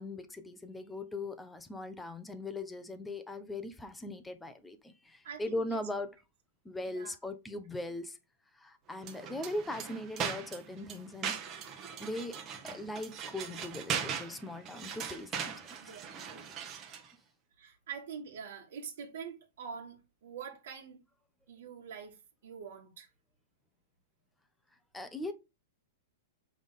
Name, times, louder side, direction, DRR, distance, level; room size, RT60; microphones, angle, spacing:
voice 1, 0.0-6.2 6.6-8.2 8.6-11.3 12.0-12.4 12.6-15.9 24.9-25.3, left 1 dB, 5° left, 0.7 m, -40 dB
voice 2, 5.2-5.8 6.9-7.2 13.4-13.7 15.8-16.4 17.6-21.0 21.5-23.1, right 6 dB, 70° right, 1.6 m, -45 dB
sound 1, 9.0-17.1, right 7 dB, 25° right, 1.2 m, -40 dB
7.1 x 3.5 x 4.0 m
supercardioid pair, 155°, 0 cm